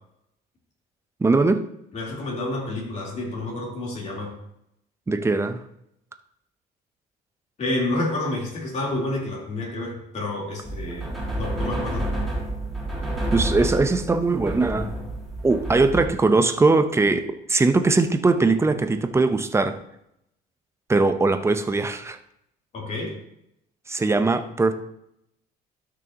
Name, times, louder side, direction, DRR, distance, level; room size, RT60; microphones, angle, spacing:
voice 1, 1.2-1.6 5.1-5.6 13.3-15.0 15.4-19.8 20.9-22.2 23.9-24.7, right 3 dB, 15° right, 8 dB, 0.7 m, -20 dB
voice 2, 1.9-4.3 7.6-11.1 11.3-12.1 22.7-23.1, left 2 dB, 45° left, -3 dB, 3.5 m, -29 dB
sound 1, 10.6-16.1, right 1 dB, ahead, 2.6 m, -29 dB
12.5 x 6.2 x 2.9 m, 0.77 s
cardioid pair, 110°, 17 cm